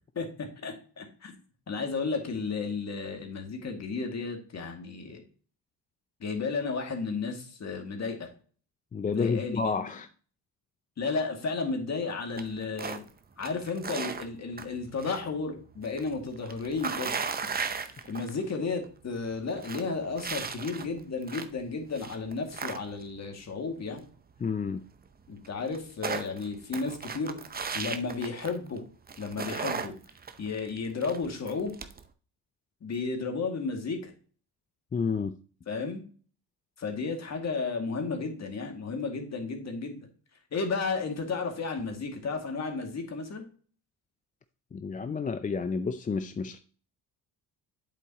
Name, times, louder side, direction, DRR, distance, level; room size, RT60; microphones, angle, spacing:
voice 1, 0.1-1.4 1.7-5.2 6.2-8.3 9.1-9.6 11.0-13.0 13.4-17.5 18.1-24.0 25.3-27.4 27.7-28.8 29.2-29.9 30.4-31.7 32.8-34.1 35.7-36.0 36.8-40.1 40.5-43.5, left 4 dB, 40° left, 3 dB, 2.2 m, -33 dB
voice 2, 8.9-10.1 24.4-24.9 34.9-35.4 44.7-46.6, left 5 dB, 20° left, 10 dB, 0.4 m, -30 dB
sound 1, 12.4-13.1 13.4-15.2 15.5-18.5 18.8-18.9 19.3-21.6 22.0-23.2 24.8-24.9 25.1-25.2 25.4-28.8 29.1-32.0, right 5 dB, 25° right, 0.7 m, -36 dB
8.2 x 7.2 x 2.9 m, 0.42 s
cardioid pair, 95°, 40 cm